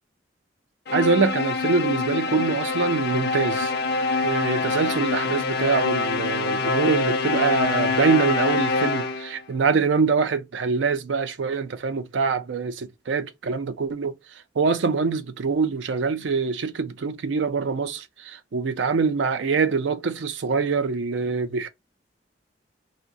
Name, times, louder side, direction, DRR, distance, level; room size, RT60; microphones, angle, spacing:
sound 1, 0.9-9.4, left 3 dB, 60° left, 0.4 m, -25 dB
voice 1, 0.9-3.7 4.2-14.2 14.6-21.7, right 4 dB, 80° right, 0.5 m, -24 dB
2.6 x 2.1 x 3.7 m
head